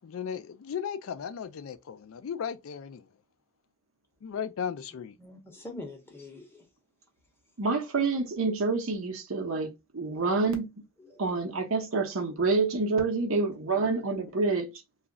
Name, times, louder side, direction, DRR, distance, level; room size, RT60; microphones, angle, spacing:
voice 1, 0.0-3.1 4.2-5.2, left 7 dB, 75° left, 0.4 m, -36 dB
voice 2, 5.2-6.7 10.0-10.2 11.0-11.3 13.8-13.9, left 2 dB, 10° left, 0.8 m, -44 dB
voice 3, 7.6-10.7 11.2-14.7, right 3 dB, 75° right, 0.8 m, -27 dB
2.4 x 2.0 x 3.5 m
head